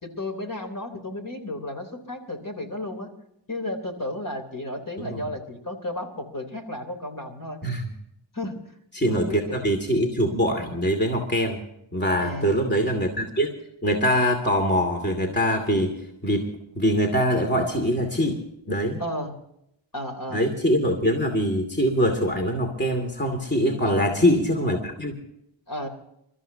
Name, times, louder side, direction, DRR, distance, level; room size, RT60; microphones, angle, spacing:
voice 1, 0.0-3.1 3.5-7.6 8.3-8.5 9.1-9.6 12.2-12.6 19.0-19.3 19.9-20.5 23.8-24.2 25.7-25.9, left 1 dB, 45° left, 5 dB, 3.5 m, -33 dB
voice 2, 8.9-11.6 11.9-13.5 13.8-15.9 16.2-16.5 16.8-18.4 18.7-19.0 20.3-25.1, equal, 20° left, 4 dB, 2.5 m, -23 dB
29.5 x 14.0 x 2.8 m, 0.79 s
wide cardioid pair, 100°, 47 cm